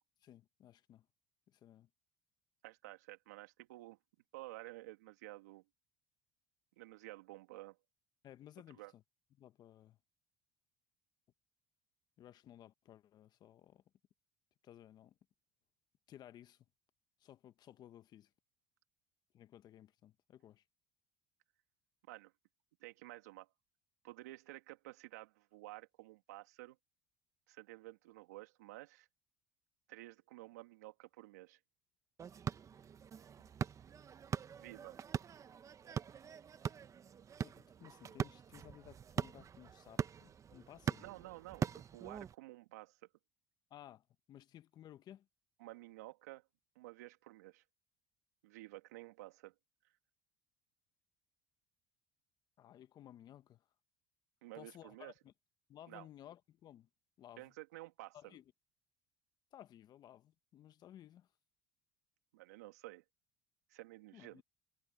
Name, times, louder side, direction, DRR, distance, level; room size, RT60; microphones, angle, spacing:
voice 1, 0.2-1.1 1.5-1.9 8.2-9.0 9.4-10.0 12.2-13.8 14.6-15.2 16.1-16.6 17.2-18.3 19.3-20.6 37.4-41.0 43.7-45.3 52.6-53.6 54.5-55.3 55.7-56.9 57.2-57.5 58.1-58.4 59.5-61.3 64.1-64.4, left 11 dB, 55° left, 1.4 m, -57 dB
voice 2, 2.6-4.0 4.3-5.6 6.8-7.8 8.7-8.9 22.1-22.3 22.8-23.5 24.0-26.8 27.5-29.1 29.9-31.6 34.6-35.0 41.0-43.0 45.6-46.4 46.7-47.6 48.4-49.5 54.4-55.1 55.9-56.1 57.4-58.4 62.3-63.0 63.7-64.4, right 18 dB, 90° right, 2.6 m, -52 dB
sound 1, 32.2-42.3, right 7 dB, 40° right, 1.2 m, -42 dB
supercardioid pair, 80°, 9 cm